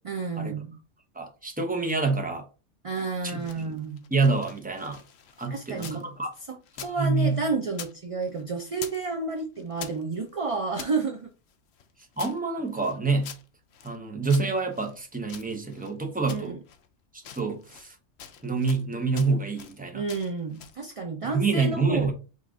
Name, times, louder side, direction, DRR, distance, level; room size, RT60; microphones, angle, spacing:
voice 1, 0.0-0.7 2.8-4.0 5.5-6.1 6.5-11.3 16.3-16.6 19.9-22.1, right 4 dB, 50° right, 0.4 m, -31 dB
voice 2, 1.1-2.4 3.2-3.7 4.1-5.0 5.4-6.3 7.0-7.4 12.2-13.3 13.8-16.6 17.1-17.9 18.4-20.0 21.2-22.1, right 4 dB, 10° right, 0.7 m, -27 dB
sound 1, 3.2-6.0 6.3-9.1 9.3-11.0 11.5-14.0 14.3-15.9 16.3-16.9 17.2-17.9 18.2-18.9 19.1-19.8 20.1-20.8, left 8 dB, 65° left, 0.8 m, -45 dB
5.4 x 2.5 x 3.6 m
omnidirectional pair, 1.3 m